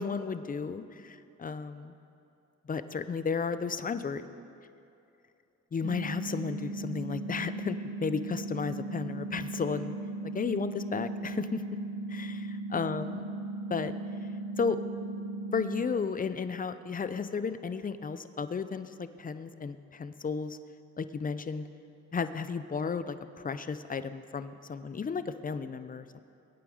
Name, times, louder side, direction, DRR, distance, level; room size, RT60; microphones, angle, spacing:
voice 1, 0.0-1.9 2.7-4.2 5.7-9.9 10.2-11.6 12.1-13.3 13.7-13.9 14.6-14.8 15.5-20.6 21.0-21.7 22.1-26.2, left 5 dB, 30° left, 12 dB, 0.7 m, -33 dB
sound 1, 5.8-15.8, right 2 dB, 45° right, 2.1 m, -37 dB
21.5 x 9.2 x 5.0 m, 2.6 s
cardioid pair, 90°, 30 cm